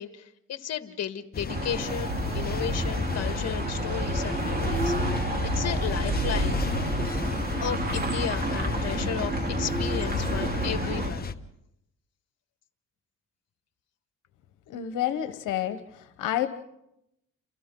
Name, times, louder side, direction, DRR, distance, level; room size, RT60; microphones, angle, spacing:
voice 1, 0.0-6.6 7.6-11.2, left 9 dB, 60° left, 9 dB, 1.7 m, -34 dB
sound 1, 1.3-11.3, left 5 dB, 30° left, 1.2 m, -32 dB
sound 2, 1.5-11.1, right 2 dB, 30° right, 3.2 m, -30 dB
sound 3, 1.6-7.7, left 2 dB, 5° left, 6.4 m, -46 dB
voice 2, 14.7-16.5, left 11 dB, 85° left, 9 dB, 1.1 m, -29 dB
29.0 x 28.5 x 3.8 m, 0.81 s
cardioid pair, 90°, 30 cm